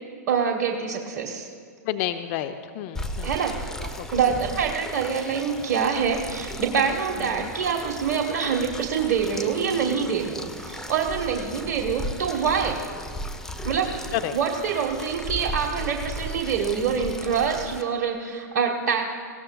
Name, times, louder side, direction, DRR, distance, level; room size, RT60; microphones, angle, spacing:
voice 1, 0.3-1.5 3.2-3.7 4.1-12.8 13.6-13.9 14.3-19.0, right 6 dB, 50° right, -1 dB, 1.4 m, -25 dB
voice 2, 1.8-3.3 4.0-4.1 7.2-7.5 14.1-14.3, left 12 dB, 45° left, 9 dB, 0.6 m, -30 dB
sound 1, 2.9-17.8, left 1 dB, 5° left, 0.8 m, -36 dB
20.0 x 17.0 x 2.4 m, 2.1 s
hypercardioid pair, 105°, 9 cm